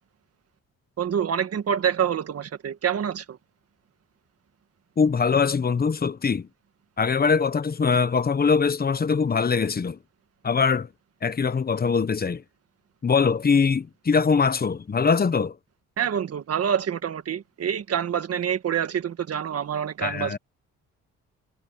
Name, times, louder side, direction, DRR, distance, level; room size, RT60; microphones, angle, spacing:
voice 1, 1.0-3.4 16.0-20.4, right 8 dB, 55° right, 1.8 m, -26 dB
voice 2, 5.0-6.5 7.0-10.0 10.4-10.9 11.2-12.4 13.0-15.6 20.0-20.4, left 5 dB, 30° left, 1.2 m, -22 dB
cardioid pair, 90°, 30 cm